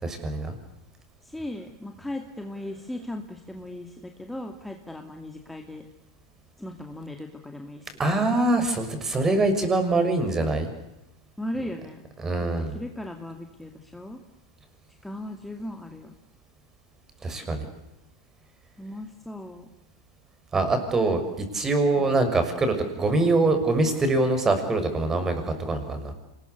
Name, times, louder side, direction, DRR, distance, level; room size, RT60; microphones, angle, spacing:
voice 1, 0.0-0.6 8.0-10.7 12.2-12.7 17.2-17.6 20.5-26.1, right 2 dB, 20° right, 8 dB, 6.4 m, -24 dB
voice 2, 1.2-5.8 6.6-8.0 11.4-12.0 12.6-14.2 15.0-16.1 18.8-19.7, left 1 dB, 5° left, 4 dB, 2.4 m, -37 dB
27.0 x 20.5 x 8.3 m, 0.92 s
hypercardioid pair, 105°, 2 cm